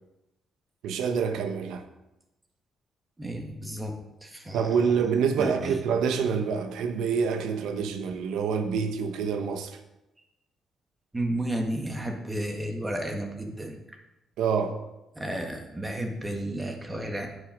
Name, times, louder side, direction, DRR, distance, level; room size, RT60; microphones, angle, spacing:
voice 1, 0.8-1.8 4.5-9.8 14.4-14.8, right 6 dB, 85° right, 0.9 m, -27 dB
voice 2, 3.2-5.0 5.4-5.8 11.1-13.8 15.1-17.3, right 1 dB, 20° right, 1.7 m, -32 dB
9.8 x 6.4 x 5.2 m
cardioid pair, 90°, 0 cm